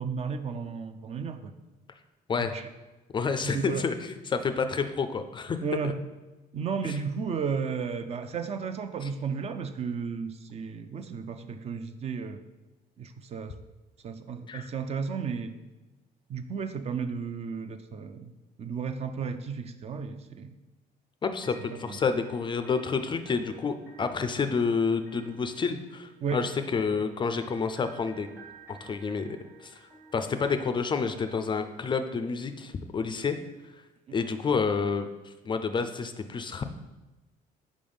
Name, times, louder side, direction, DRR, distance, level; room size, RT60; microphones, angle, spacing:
voice 1, 0.0-1.5 2.5-2.7 3.4-3.9 5.6-6.0 6.5-12.4 13.0-13.5 14.0-15.6 16.3-18.3 18.6-20.5 21.9-22.0 26.2-26.4, right 6 dB, 40° right, 8 dB, 0.4 m, -33 dB
voice 2, 3.1-5.6 5.8-5.9 6.8-7.0 9.0-9.1 14.5-14.7 21.2-28.3 28.7-29.3 29.6-29.8 30.1-33.4 34.1-36.6, left 5 dB, 30° left, 9 dB, 0.4 m, -29 dB
sound 1, 21.4-31.5, right 3 dB, 10° right, 1.1 m, -53 dB
5.0 x 3.5 x 5.4 m, 1.1 s
cardioid pair, 110°, 17 cm